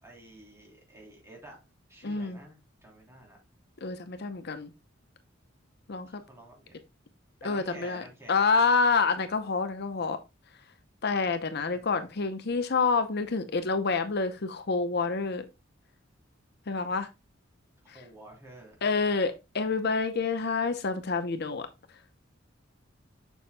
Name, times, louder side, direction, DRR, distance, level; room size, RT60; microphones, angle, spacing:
voice 1, 0.0-1.6 1.9-3.4 6.0-6.7 7.4-8.4 11.7-12.1 17.8-18.8, right 1 dB, 15° right, 3.3 m, -50 dB
voice 2, 2.0-2.4 3.8-4.7 5.9-6.2 7.4-10.2 11.0-15.5 16.7-17.1 18.8-21.7, left 4 dB, 55° left, 0.7 m, -28 dB
7.1 x 6.8 x 2.2 m
head